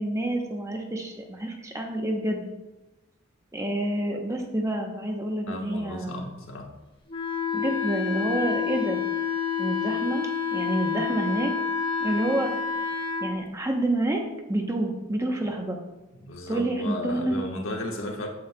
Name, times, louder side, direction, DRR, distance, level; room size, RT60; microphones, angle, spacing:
voice 1, 0.0-2.5 3.5-6.3 7.5-9.0 9.6-11.5 12.0-12.5 13.2-14.2 14.5-15.8 16.5-17.4, right 1 dB, 15° right, 2 dB, 0.8 m, -28 dB
voice 2, 5.5-6.7 16.2-18.3, left 1 dB, 75° left, 1 dB, 1.2 m, -34 dB
Wind instrument woodwind instrument, 7.1-13.3, left 6 dB, 25° left, 0.8 m, -28 dB
8.6 x 7.6 x 2.2 m, 1.0 s
head